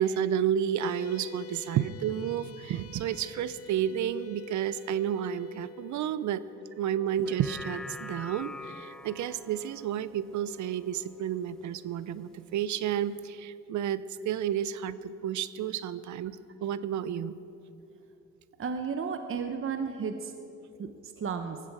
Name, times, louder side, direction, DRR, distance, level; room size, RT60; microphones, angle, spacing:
voice 1, 0.0-6.4 6.8-17.3, right 9 dB, 70° right, 16 dB, 0.7 m, -31 dB
sound 1, 0.8-13.4, left 11 dB, 50° left, 0.7 m, -52 dB
sound 2, 7.1-11.7 12.1-12.2, left 2 dB, ahead, 0.4 m, -46 dB
voice 2, 18.6-20.3 20.8-21.6, right 6 dB, 45° right, 7 dB, 1.0 m, -33 dB
19.5 x 15.0 x 4.8 m, 2.8 s
cardioid pair, 90°, 30 cm